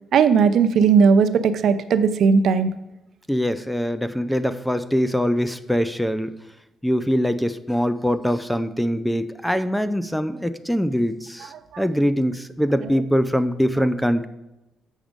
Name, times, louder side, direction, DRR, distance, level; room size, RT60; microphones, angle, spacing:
voice 1, 0.1-2.7 11.7-11.8 12.8-12.9, right 6 dB, 65° right, 11 dB, 0.6 m, -17 dB
voice 2, 3.3-6.3 6.8-14.3, equal, 5° left, 12 dB, 0.5 m, -23 dB
7.4 x 6.2 x 5.2 m, 0.98 s
cardioid pair, 90°, 0 cm